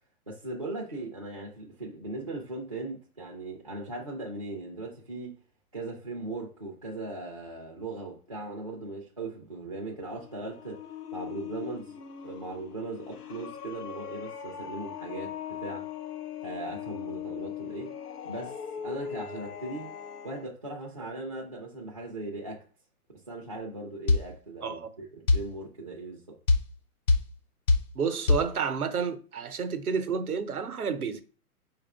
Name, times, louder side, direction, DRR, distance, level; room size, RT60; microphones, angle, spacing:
voice 1, 0.3-5.4 5.7-10.8 11.1-11.9 12.2-15.9 16.4-17.9 18.2-19.9 20.2-22.6 23.3-26.4, right 2 dB, 25° right, 0.3 m, -38 dB
sound 1, 9.9-20.5, left 9 dB, 90° left, 0.5 m, -40 dB
sound 2, 24.1-24.3 25.3-25.5 26.5-26.7 27.1-27.3 27.7-27.9 28.3-28.5, left 3 dB, 70° left, 1.0 m, -21 dB
voice 2, 27.9-31.2, right 6 dB, 70° right, 0.8 m, -30 dB
5.0 x 2.4 x 3.4 m
figure-of-eight pair, 120°, 45 cm